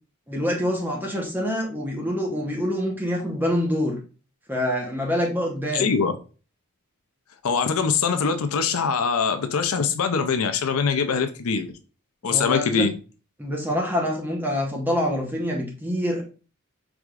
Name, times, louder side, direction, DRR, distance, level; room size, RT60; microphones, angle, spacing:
voice 1, 0.3-4.0 4.5-5.9 12.2-12.8 13.4-16.2, equal, 10° right, 1 dB, 1.0 m, -26 dB
voice 2, 5.7-6.2 7.4-11.7 12.2-12.9, left 5 dB, 75° left, 8 dB, 0.5 m, -23 dB
4.8 x 3.5 x 2.4 m, 0.35 s
head